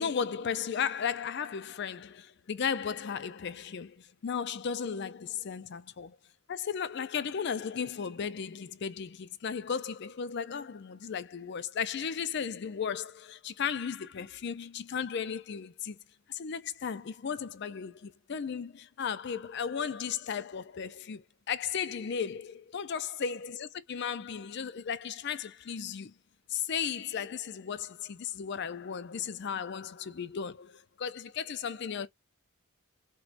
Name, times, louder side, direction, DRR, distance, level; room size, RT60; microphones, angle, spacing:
voice 1, 0.0-6.2 6.5-16.0 16.3-26.1 26.5-32.1, left 7 dB, 50° left, 0.4 m, -35 dB
4.6 x 2.2 x 2.4 m
head